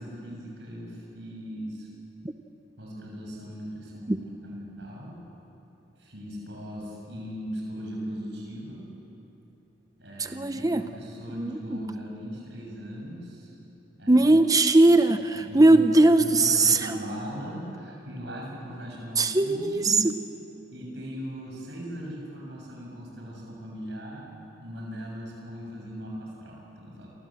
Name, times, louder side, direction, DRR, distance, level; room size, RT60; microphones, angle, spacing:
voice 1, 0.0-1.9 2.8-5.2 6.0-8.8 10.0-13.5 14.0-14.3 15.3-15.9 16.2-20.0 20.7-27.1, equal, 60° right, -2 dB, 7.1 m, -39 dB
voice 2, 10.2-10.8 11.3-11.8 14.1-17.0 19.2-20.1, right 2 dB, 20° right, 9 dB, 0.7 m, -20 dB
29.0 x 24.5 x 7.7 m, 3.0 s
head